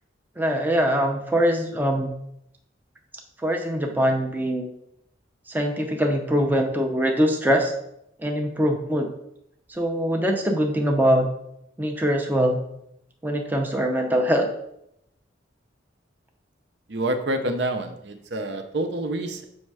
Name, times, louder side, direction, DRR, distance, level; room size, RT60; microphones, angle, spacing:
voice 1, 0.4-2.1 3.4-4.7 5.5-7.7 8.2-9.1 9.7-11.3 11.8-12.6 13.2-14.5, equal, 10° right, 2 dB, 0.5 m, -23 dB
voice 2, 16.9-19.4, right 1 dB, 60° right, 6 dB, 0.6 m, -27 dB
6.3 x 3.2 x 4.7 m, 0.78 s
head